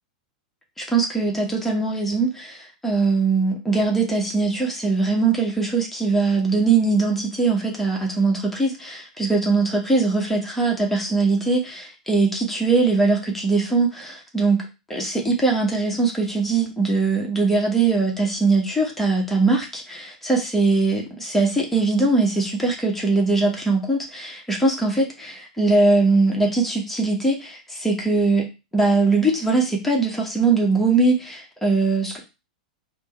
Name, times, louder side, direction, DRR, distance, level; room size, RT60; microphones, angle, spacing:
voice 1, 0.8-14.6 14.9-28.4 28.7-32.2, right 3 dB, 5° left, -1 dB, 0.9 m, -21 dB
3.5 x 2.1 x 4.3 m, 0.28 s
figure-of-eight pair, 95°, 4 cm